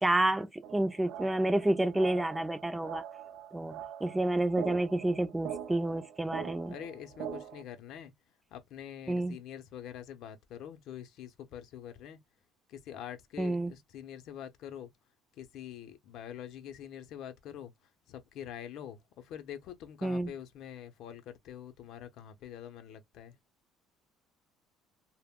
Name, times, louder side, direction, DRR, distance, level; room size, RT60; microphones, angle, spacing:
voice 1, 0.0-3.0 3.5-6.7 9.1-9.4 13.4-13.7 20.0-20.3, right 1 dB, 10° right, 0.3 m, -29 dB
sound 1, 0.6-7.6, right 9 dB, 60° right, 0.5 m, -43 dB
voice 2, 6.7-8.1 8.5-12.2 12.7-14.9 15.4-17.7 18.1-23.3, left 10 dB, 65° left, 0.5 m, -45 dB
2.1 x 2.0 x 3.5 m
supercardioid pair, 105°, 0 cm